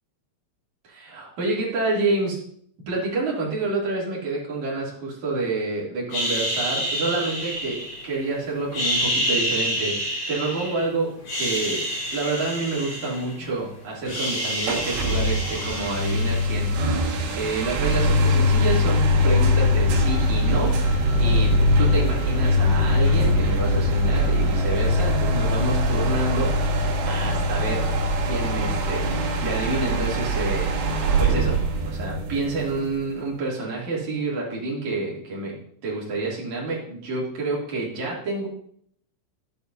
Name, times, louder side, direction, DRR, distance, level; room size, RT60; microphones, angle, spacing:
voice 1, 0.9-2.4 2.9-11.8 12.1-27.9 28.2-30.7 31.2-31.6 31.8-35.5 35.8-38.5, right 3 dB, 45° right, -5 dB, 3.2 m, -28 dB
sound 1, 6.1-8.3 8.7-10.8 11.2-13.6 13.8-16.7, equal, 55° left, 5.8 m, -28 dB
sound 2, 14.6-33.1, left 1 dB, 80° right, 4.1 m, -22 dB
12.0 x 9.0 x 2.6 m, 0.65 s
omnidirectional pair, 5.6 m